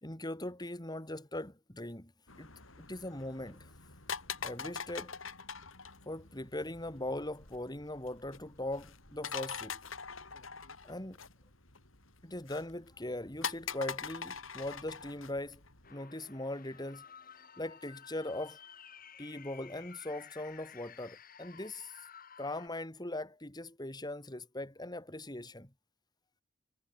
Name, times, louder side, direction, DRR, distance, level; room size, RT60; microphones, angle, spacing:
voice 1, 0.0-2.1 2.4-2.5 2.8-3.7 4.4-5.2 6.0-9.8 10.8-11.2 12.2-15.6 15.9-17.0 17.6-18.6 19.2-21.9 22.4-25.7, left 1 dB, 20° left, 3.4 m, -40 dB
sound 1, 2.3-15.9, left 6 dB, 85° left, 6.4 m, -44 dB
sound 2, 15.8-22.7, left 7 dB, 45° left, 4.3 m, -54 dB
head